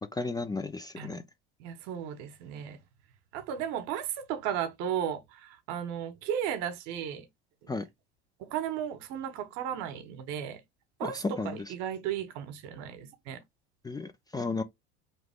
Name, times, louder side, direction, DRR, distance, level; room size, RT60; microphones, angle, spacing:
voice 1, 0.1-1.2 7.7-7.9 11.0-11.6 13.8-14.6, left 3 dB, 15° left, 0.4 m, -33 dB
voice 2, 1.6-2.8 3.3-7.3 8.4-10.6 11.0-13.4, right 9 dB, 65° right, 1.0 m, -35 dB
3.8 x 3.0 x 3.5 m
hypercardioid pair, 85°, 31 cm